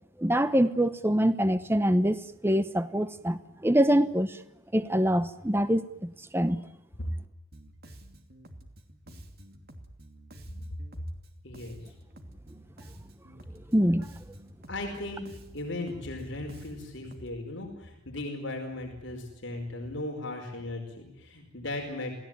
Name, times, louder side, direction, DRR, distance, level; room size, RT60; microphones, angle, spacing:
voice 1, 0.2-4.4 4.7-6.6 13.7-14.1, equal, 10° right, 12 dB, 0.9 m, -25 dB
Bass guitar, 7.5-17.4, right 1 dB, 45° right, 2.8 m, -50 dB
voice 2, 11.4-11.8 14.7-15.3 15.5-22.2, left 2 dB, 60° left, 3 dB, 5.1 m, -37 dB
28.0 x 18.0 x 9.1 m, 0.86 s
head